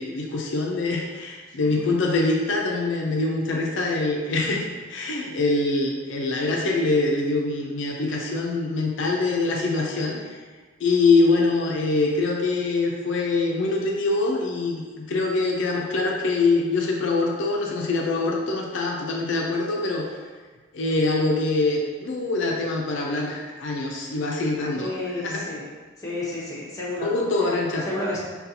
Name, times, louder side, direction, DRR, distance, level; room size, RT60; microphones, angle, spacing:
voice 1, 0.0-10.2 10.8-20.1 20.7-25.5 27.0-27.9, left 3 dB, 75° left, -1 dB, 0.4 m, -24 dB
voice 2, 24.7-25.6 26.0-27.1 27.9-28.2, left 1 dB, 15° left, -7 dB, 0.7 m, -31 dB
4.0 x 2.3 x 2.6 m, 1.4 s
head